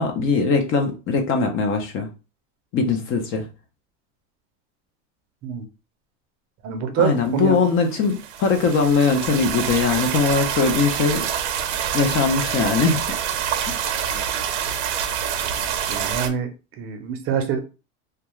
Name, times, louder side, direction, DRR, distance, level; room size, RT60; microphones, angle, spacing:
voice 1, 0.0-2.1 2.7-3.5 7.0-11.3 11.9-13.0 13.7-14.0, left 4 dB, 35° left, 0.5 m, -21 dB
voice 2, 6.6-7.6 14.0-14.2 15.9-16.5 16.8-17.6, right 7 dB, 40° right, 0.5 m, -25 dB
sound 1, 7.9-16.3, right 9 dB, 80° right, 0.6 m, -26 dB
2.3 x 2.2 x 3.0 m
supercardioid pair, 140°, 35 cm